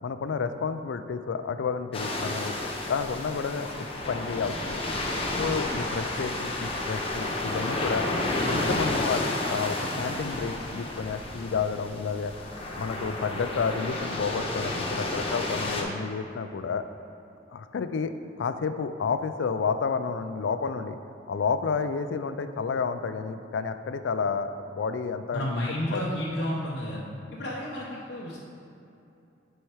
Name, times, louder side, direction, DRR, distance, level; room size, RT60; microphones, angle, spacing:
voice 1, 0.0-4.8 5.4-8.1 8.4-9.2 9.5-12.3 12.8-16.8 17.5-18.1 18.4-21.0 21.3-25.6 25.9-26.0, left 5 dB, 80° left, 10 dB, 0.4 m, -30 dB
sound 1, 1.9-15.8, left 2 dB, 30° left, 0.8 m, -31 dB
voice 2, 25.3-27.0 27.3-28.4, left 1 dB, 60° left, -5 dB, 0.9 m, -31 dB
7.9 x 4.4 x 4.7 m, 2.7 s
head